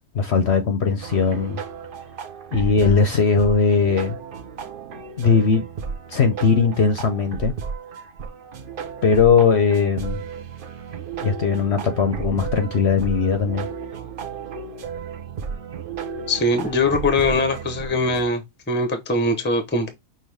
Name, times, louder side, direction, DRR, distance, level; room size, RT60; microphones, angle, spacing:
voice 1, 0.1-1.6 2.5-4.2 5.2-5.6 6.1-7.5 9.0-10.2 11.2-13.7, left 5 dB, 55° left, 0.8 m, -19 dB
sound 1, 1.0-18.2, right 6 dB, 50° right, 0.7 m, -33 dB
voice 2, 16.3-19.9, left 2 dB, 10° left, 0.6 m, -22 dB
5.9 x 2.6 x 3.4 m
omnidirectional pair, 1.6 m